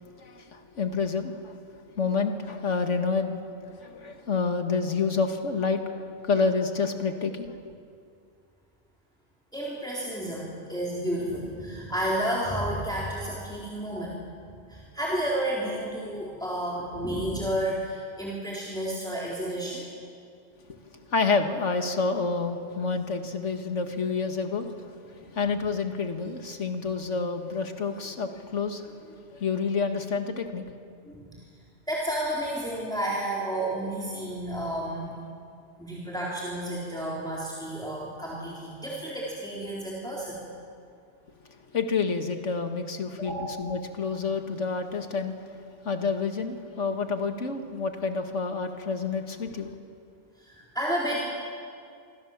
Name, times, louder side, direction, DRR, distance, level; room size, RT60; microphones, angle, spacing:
voice 1, 0.2-1.6 1.9-3.3 3.8-7.6 21.1-24.7 25.1-30.7 41.7-45.3 45.8-49.7, left 4 dB, 85° left, 6 dB, 2.0 m, -28 dB
voice 2, 9.5-14.2 14.7-19.8 31.1-31.4 31.9-35.2 35.8-40.4 43.2-43.5 50.4-51.3, right 1 dB, 5° left, -6 dB, 3.9 m, -31 dB
27.0 x 25.0 x 7.3 m, 2.3 s
omnidirectional pair, 1.2 m